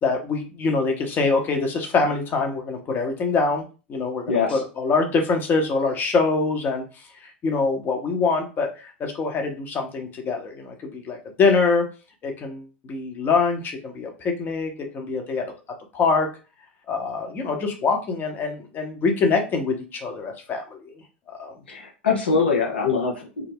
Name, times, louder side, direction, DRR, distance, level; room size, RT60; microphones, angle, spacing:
voice 1, 0.0-3.6 3.9-6.8 7.2-11.8 12.2-15.4 15.9-16.3 16.9-21.0 21.3-21.5, left 4 dB, 35° left, 3 dB, 0.7 m, -24 dB
voice 2, 4.3-4.6 21.7-23.5, left 5 dB, 85° left, 2 dB, 0.5 m, -23 dB
2.4 x 2.0 x 3.4 m, 0.33 s
hypercardioid pair, 90°, 6 cm